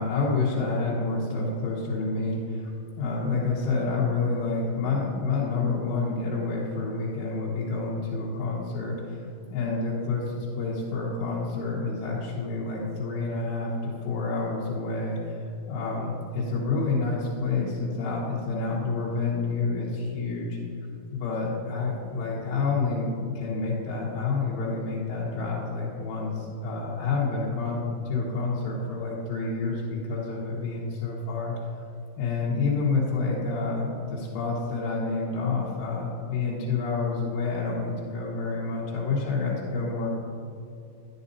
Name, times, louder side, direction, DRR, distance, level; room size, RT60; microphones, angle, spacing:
voice 1, 0.0-2.7 3.0-9.2 9.5-15.4 15.7-20.6 21.1-31.6 32.2-40.1, left 3 dB, 90° left, -7 dB, 3.7 m, -28 dB
11.5 x 11.0 x 2.7 m, 2.6 s
omnidirectional pair, 5.4 m